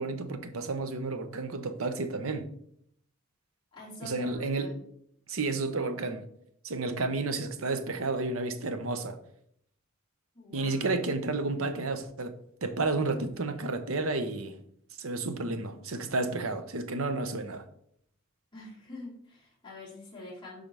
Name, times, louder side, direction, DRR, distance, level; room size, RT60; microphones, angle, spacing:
voice 1, 0.0-2.5 4.0-4.7 5.3-6.2 6.6-9.2 10.5-12.3 12.6-14.5 15.0-17.6, right 3 dB, 80° right, 0.8 m, -31 dB
voice 2, 3.7-4.8 10.3-10.9 18.5-20.6, left 2 dB, 25° left, 2.8 m, -46 dB
11.5 x 3.8 x 3.4 m
head